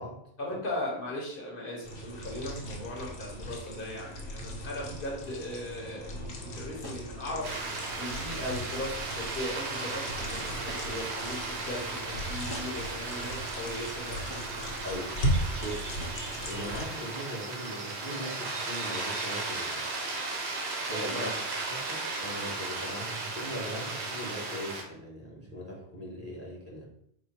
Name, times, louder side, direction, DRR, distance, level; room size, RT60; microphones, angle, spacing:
voice 1, 0.4-7.5 8.0-14.2 21.1-21.3, left 1 dB, 60° left, -1 dB, 1.0 m, -38 dB
sound 1, 1.8-16.8, equal, 80° left, 1.1 m, -37 dB
sound 2, 6.8-7.1 8.7-9.0 10.7-11.1 12.5-12.9 14.3-14.7 16.0-16.3, equal, 25° left, 0.6 m, -45 dB
sound 3, 7.4-24.8, right 3 dB, 80° right, 1.1 m, -36 dB
voice 2, 14.8-15.2 15.6-15.9 16.4-19.9 20.9-21.4 21.7-26.9, equal, 15° right, -4 dB, 1.1 m, -39 dB
4.2 x 2.2 x 4.2 m, 0.72 s
omnidirectional pair, 1.1 m